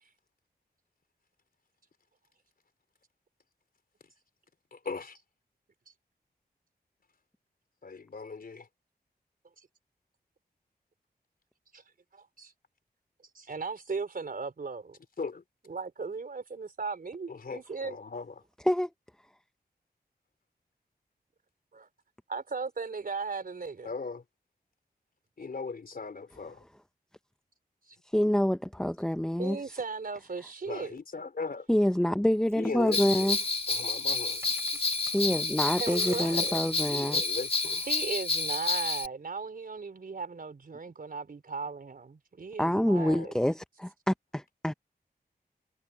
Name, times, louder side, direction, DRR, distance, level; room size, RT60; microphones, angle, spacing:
voice 1, 4.7-5.2 7.8-8.7 15.2-15.4 17.3-18.3 23.8-24.2 25.4-26.6 30.7-31.7 32.5-33.4 33.7-34.4 36.9-37.8 43.0-43.3, left 4 dB, 65° left, 4.0 m, -38 dB
voice 2, 12.1-12.5 13.3-15.0 15.7-18.0 21.7-21.9 22.3-23.9 27.9-28.0 29.4-30.9 35.8-36.6 37.9-43.3, right 4 dB, 60° right, 4.2 m, -37 dB
voice 3, 28.0-29.7 31.7-33.4 35.1-37.2 42.6-44.7, equal, 5° left, 0.6 m, -27 dB
Coin (dropping), 32.5-35.3 35.7-37.9, right 1 dB, 15° right, 4.0 m, -50 dB
Bell, 32.9-39.1, left 3 dB, 35° left, 1.7 m, -30 dB
wide cardioid pair, 75°, 17 cm